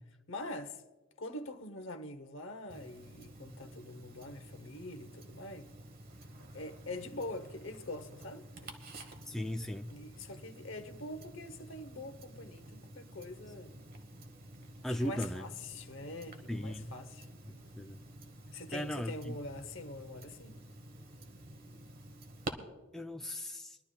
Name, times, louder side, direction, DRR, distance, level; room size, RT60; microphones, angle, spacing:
voice 1, 0.3-0.8 1.2-5.7 6.5-8.7 9.9-13.7 14.8-17.3 18.5-20.6, left 2 dB, 60° left, 0.9 m, -44 dB
Tick-tock, 2.7-22.5, right 1 dB, 45° right, 1.2 m, -50 dB
voice 2, 9.3-9.9 14.8-15.5 16.5-16.9 17.8-18.0 18.7-19.4 22.9-23.8, left 1 dB, ahead, 0.3 m, -37 dB
23.5 x 12.0 x 2.3 m
head